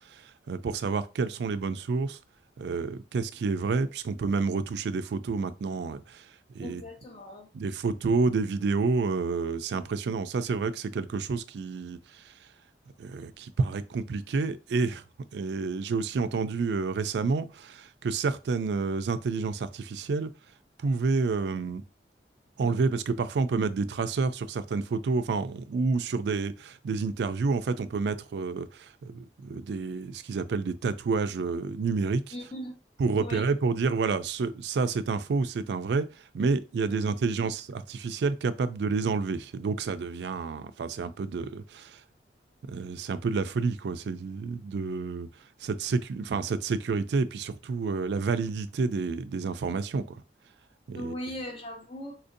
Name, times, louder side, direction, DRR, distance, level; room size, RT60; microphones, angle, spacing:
voice 1, 0.1-2.2 2.6-6.3 6.5-6.8 7.5-12.3 13.0-15.0 15.3-20.3 20.8-21.8 22.6-32.3 33.0-42.0 42.6-45.3 45.6-50.2 50.9-51.1, right 4 dB, 75° right, 0.3 m, -29 dB
voice 2, 6.6-7.5 32.3-32.8 33.2-33.5 37.2-37.3 50.9-52.1, equal, 30° left, 0.9 m, -39 dB
4.2 x 2.6 x 2.6 m
head